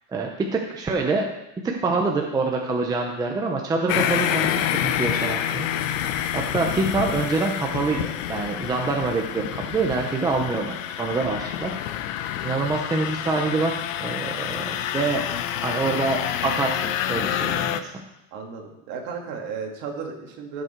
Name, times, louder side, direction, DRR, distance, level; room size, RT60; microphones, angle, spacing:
voice 1, 0.1-1.2 1.8-4.5 4.8-5.7 6.0-11.7 12.4-15.3 15.6-17.9, right 3 dB, 10° right, 1 dB, 0.7 m, -26 dB
sound 1, 3.9-17.8, left 10 dB, 80° left, 0.9 m, -28 dB
voice 2, 18.3-20.6, right 5 dB, 50° right, 1 dB, 2.3 m, -34 dB
16.0 x 6.5 x 4.5 m, 0.92 s
supercardioid pair, 170°, 38 cm